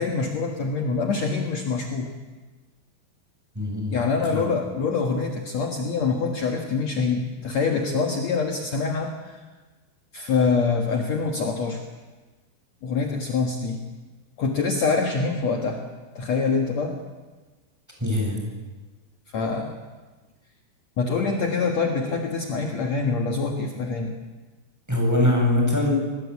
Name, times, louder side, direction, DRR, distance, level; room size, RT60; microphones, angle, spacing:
voice 1, 0.0-2.1 3.9-9.4 10.1-11.8 12.8-13.8 14.4-15.8 16.2-17.0 19.3-19.8 21.0-24.1, left 4 dB, 60° left, 3 dB, 1.9 m, -25 dB
voice 2, 3.5-4.0 4.3-4.4 18.0-18.4 24.9-25.9, left 1 dB, 5° right, -1 dB, 7.6 m, -22 dB
28.0 x 20.0 x 8.4 m, 1.3 s
omnidirectional pair, 5.3 m